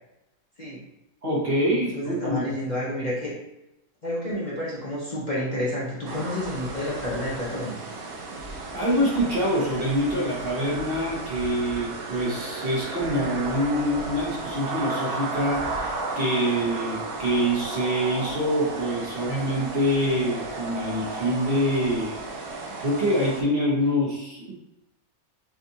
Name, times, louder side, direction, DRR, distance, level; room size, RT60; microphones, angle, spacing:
voice 1, 1.2-2.5 8.4-22.2 22.5-24.5, equal, 45° right, -4 dB, 1.1 m, -25 dB
voice 2, 1.9-3.3 4.0-7.7, left 1 dB, 35° left, -6 dB, 0.9 m, -30 dB
sound 1, 6.1-23.4, right 3 dB, 80° right, 1.2 m, -34 dB
6.1 x 2.5 x 2.7 m, 0.91 s
omnidirectional pair, 1.5 m